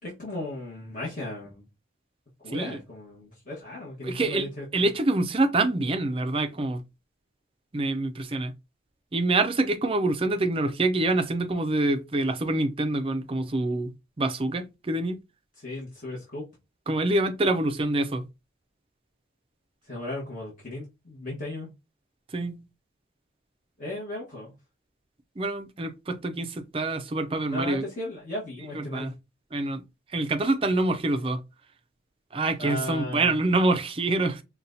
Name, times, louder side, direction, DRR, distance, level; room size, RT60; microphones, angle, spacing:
voice 1, 0.0-1.6 2.4-4.7 15.6-16.4 19.9-21.7 23.8-24.5 27.5-29.1 32.6-33.4, left 1 dB, 40° left, 1.2 m, -36 dB
voice 2, 4.0-6.8 7.7-8.5 9.1-13.9 14.2-15.2 16.9-18.2 22.3-22.6 25.4-27.8 28.7-29.1 29.5-29.8 30.1-31.4 32.3-34.4, right 2 dB, 30° right, 0.4 m, -26 dB
5.5 x 2.3 x 2.6 m
head